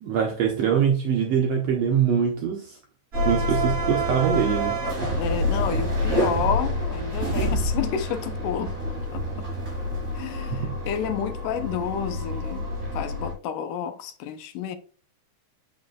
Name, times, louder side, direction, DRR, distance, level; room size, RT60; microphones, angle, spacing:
voice 1, 0.0-2.8 3.2-4.8 10.5-10.7, right 8 dB, 80° right, 1.5 m, -23 dB
sound 1, 3.1-13.3, equal, 25° right, 3.3 m, -27 dB
voice 2, 5.2-8.7 9.1-9.5 10.2-12.7 12.9-14.8, left 8 dB, 80° left, 2.2 m, -30 dB
7.5 x 6.0 x 2.3 m
omnidirectional pair, 3.8 m